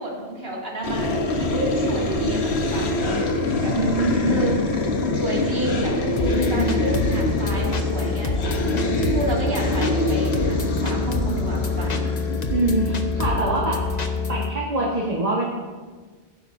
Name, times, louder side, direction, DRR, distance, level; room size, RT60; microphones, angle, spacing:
voice 1, 0.0-3.0 3.6-3.8 4.3-4.6 5.2-8.3 9.1-12.0, right 1 dB, 65° right, -4 dB, 2.7 m, -30 dB
sound 1, 0.8-13.7, left 2 dB, 80° left, 1.3 m, -25 dB
voice 2, 3.8-4.4 12.5-13.8 14.3-15.4, right 2 dB, 35° right, -4 dB, 1.6 m, -24 dB
sound 2, 6.2-14.5, left 3 dB, 40° left, 0.9 m, -26 dB
sound 3, 8.7-11.8, left 1 dB, 10° right, 0.9 m, -37 dB
17.5 x 9.7 x 2.7 m, 1.4 s
omnidirectional pair, 1.1 m